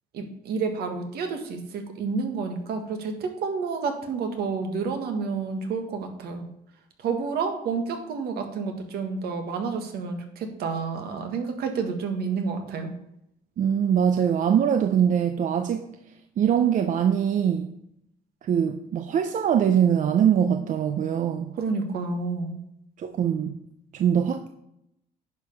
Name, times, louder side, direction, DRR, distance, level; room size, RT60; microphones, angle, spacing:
voice 1, 0.1-6.5 7.0-12.9 21.5-22.6, right 5 dB, 70° right, 1.6 m, -30 dB
voice 2, 13.6-15.9 16.4-17.7 18.4-21.6 23.0-23.6 23.9-24.5, right 8 dB, 50° right, 0.6 m, -22 dB
10.5 x 4.9 x 5.4 m
cardioid pair, 110°, 17 cm